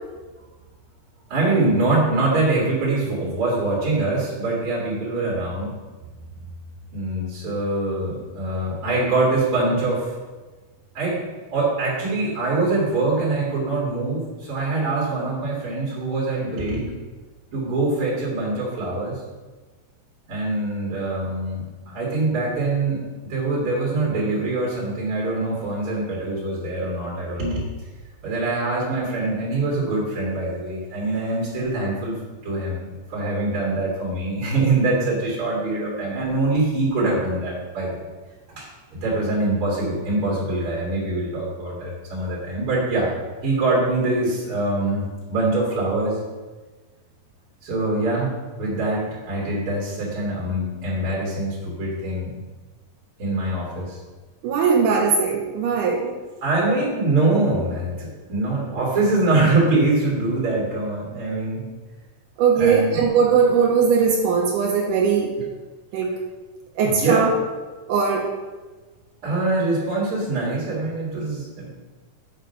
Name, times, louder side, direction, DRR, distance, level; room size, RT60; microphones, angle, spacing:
voice 1, 1.3-5.7 6.9-10.1 10.9-11.2 11.5-16.9 17.5-19.2 20.3-23.0 23.3-27.6 28.2-32.2 32.4-37.9 38.6-43.2 43.4-46.2 47.6-52.3 53.2-54.0 56.4-61.7 62.5-63.1 66.8-67.3 69.2-71.7, right 2 dB, 45° right, -6 dB, 2.8 m, -24 dB
voice 2, 54.4-56.1 62.4-65.5 65.9-66.1 66.8-67.3 67.9-68.3, right 6 dB, 80° right, -1 dB, 2.3 m, -19 dB
7.2 x 6.2 x 5.5 m, 1.3 s
omnidirectional pair, 3.8 m